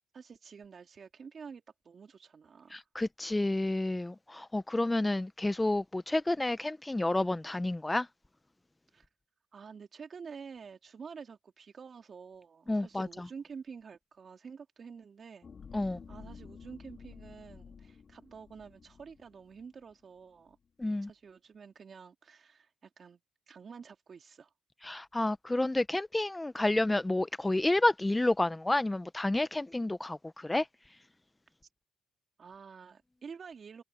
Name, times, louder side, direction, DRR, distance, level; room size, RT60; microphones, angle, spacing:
voice 1, 0.1-2.8 8.9-9.1 9.5-15.5 15.8-20.6 21.0-23.2 23.5-24.5 32.4-33.8, right 6 dB, 45° right, 2.8 m, -49 dB
voice 2, 2.7-8.1 12.7-13.3 15.7-16.0 20.8-21.1 24.8-30.7, left 2 dB, 15° left, 0.6 m, -30 dB
sound 1, 15.4-19.9 20.4-20.5, left 6 dB, 45° left, 3.1 m, -51 dB
cardioid pair, 90°, 0 cm